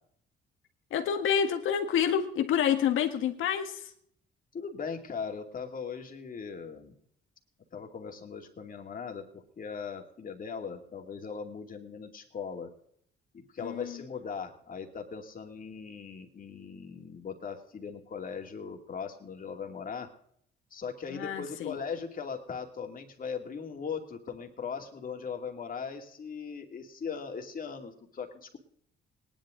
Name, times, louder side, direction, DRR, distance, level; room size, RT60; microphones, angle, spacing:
voice 1, 0.9-3.9 13.6-14.0 21.1-21.8, left 8 dB, 85° left, 6 dB, 1.7 m, -28 dB
voice 2, 4.5-7.0 7.7-12.7 13.3-20.1 20.7-28.6, left 6 dB, 45° left, 3 dB, 2.6 m, -39 dB
19.0 x 11.0 x 3.8 m, 0.66 s
cardioid pair, 90°, 20 cm